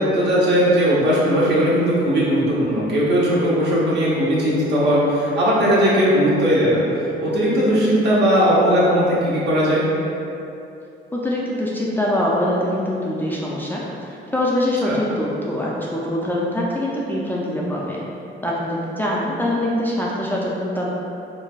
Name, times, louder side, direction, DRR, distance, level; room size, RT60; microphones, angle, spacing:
voice 1, 0.0-9.9 14.8-15.0, equal, 60° right, -7 dB, 0.8 m, -18 dB
voice 2, 11.1-18.0 18.4-20.9, left 1 dB, 10° left, -5 dB, 0.3 m, -23 dB
3.2 x 2.2 x 2.3 m, 2.8 s
cardioid pair, 90°, 20 cm